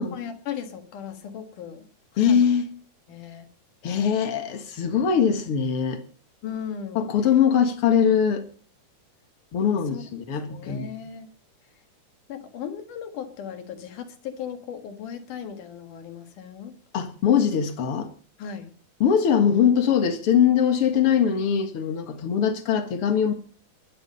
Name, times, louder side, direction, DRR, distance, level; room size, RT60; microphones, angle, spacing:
voice 1, 0.1-1.9 2.1-2.4 3.1-3.5 6.4-7.1 9.9-10.0 10.5-11.3 12.3-16.7 18.4-18.7, left 8 dB, 75° left, 3.3 m, -37 dB
voice 2, 2.2-2.7 3.8-6.0 7.0-8.4 9.5-10.9 16.9-18.1 19.0-23.3, left 7 dB, 50° left, 2.2 m, -22 dB
22.0 x 8.6 x 5.5 m
omnidirectional pair, 3.7 m